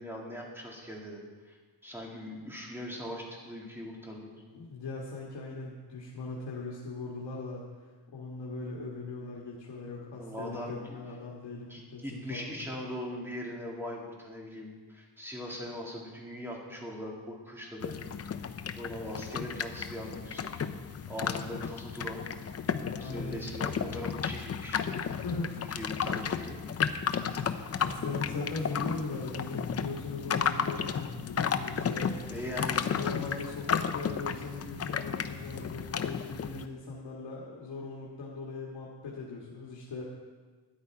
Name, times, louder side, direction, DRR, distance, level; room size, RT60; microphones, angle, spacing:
voice 1, 0.0-1.6 1.8-4.4 10.2-11.0 11.7-18.0 18.7-20.5 21.1-22.2 23.0-24.8 25.5-26.6 32.3-32.9, equal, 5° right, -2 dB, 2.3 m, -40 dB
voice 2, 4.5-7.6 8.1-12.6 22.9-23.4 25.2-25.7 27.8-32.1 32.6-40.0, left 3 dB, 80° left, -3 dB, 1.9 m, -39 dB
sound 1, 17.8-36.7, left 7 dB, 35° left, 0.5 m, -33 dB
13.0 x 10.0 x 4.7 m, 1.4 s
wide cardioid pair, 145°, 42 cm